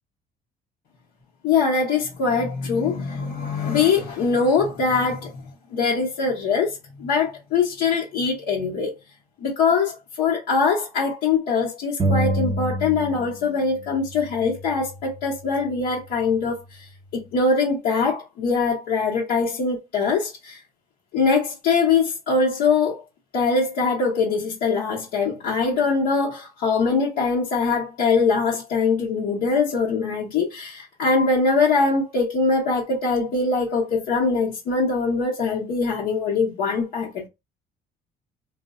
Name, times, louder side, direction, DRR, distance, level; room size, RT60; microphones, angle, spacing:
voice 1, 1.4-5.4 5.7-8.9 9.4-16.6 17.1-20.6 21.1-23.0 23.3-37.3, left 4 dB, 75° left, 0.9 m, -22 dB
sound 1, 12.0-13.5 13.8-15.5, right 1 dB, 25° right, 0.6 m, -28 dB
3.2 x 2.1 x 2.4 m
cardioid pair, 110°, 17 cm